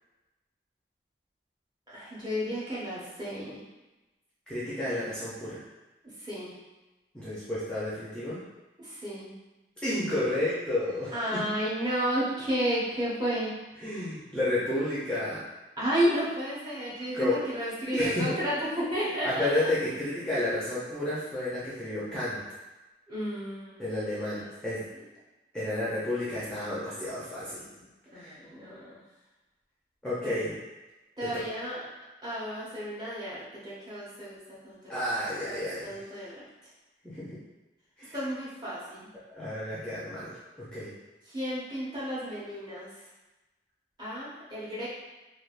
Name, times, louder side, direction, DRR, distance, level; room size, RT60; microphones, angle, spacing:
voice 1, 1.9-3.6 6.0-6.5 8.8-9.3 11.1-13.5 15.8-19.7 23.1-23.8 24.1-24.5 24.9-25.0 28.1-29.0 30.2-30.5 31.2-31.8 32.2-35.0 35.4-36.4 38.1-39.1 41.3-42.9 44.0-44.9, equal, 25° right, -8 dB, 0.8 m, -32 dB
voice 2, 4.5-5.6 7.1-8.4 9.8-11.6 13.8-15.4 17.1-17.4 17.9-18.3 19.2-22.4 23.8-24.9 25.5-27.8 28.1-28.3 30.0-30.6 31.2-31.4 34.9-36.0 37.0-37.4 38.0-38.1 39.3-40.3 40.6-40.9, left 1 dB, 5° left, -10 dB, 0.5 m, -31 dB
3.3 x 2.3 x 2.4 m, 1.1 s
head